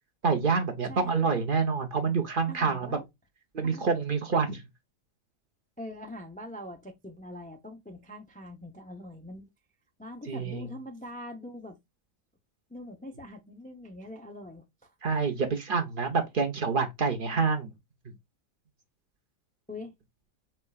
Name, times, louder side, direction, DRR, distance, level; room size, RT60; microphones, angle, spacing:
voice 1, 0.2-3.0 3.5-4.6 10.3-10.6 15.0-17.7, right 5 dB, 45° right, 0.9 m, -27 dB
voice 2, 2.5-3.1 3.6-3.8 5.8-9.5 10.0-11.8 12.7-14.6 19.7-19.9, left 1 dB, 10° left, 0.5 m, -43 dB
4.4 x 4.3 x 2.3 m
omnidirectional pair, 1.4 m